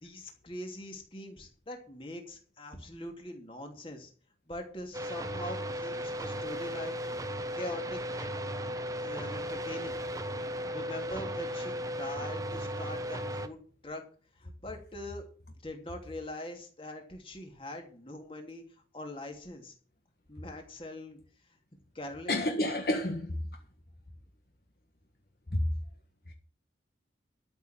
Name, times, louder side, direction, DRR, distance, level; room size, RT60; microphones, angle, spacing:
voice 1, 0.0-4.1 4.5-7.0 7.5-8.3 9.0-10.0 10.7-13.6 13.8-14.0 14.4-15.2 15.6-18.6 18.9-19.7 20.3-21.2 21.9-22.4, left 1 dB, 30° left, 2.8 m, -42 dB
sound 1, 4.9-13.5, equal, 20° right, 0.9 m, -36 dB
voice 2, 22.3-23.3 25.5-25.7, left 1 dB, 55° left, 1.6 m, -29 dB
13.0 x 6.8 x 7.4 m
head